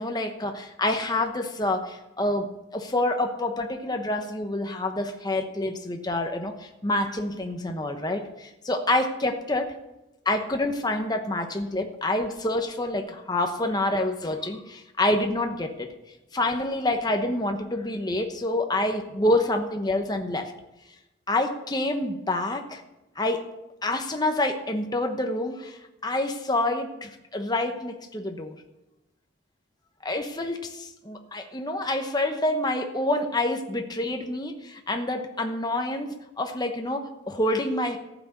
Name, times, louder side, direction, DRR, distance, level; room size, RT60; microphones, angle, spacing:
voice 1, 0.0-9.7 10.2-15.9 16.3-20.5 21.3-22.8 23.2-23.5 23.8-28.6 30.0-38.0, left 1 dB, 20° left, 4 dB, 1.0 m, -27 dB
14.5 x 6.1 x 8.1 m, 0.94 s
head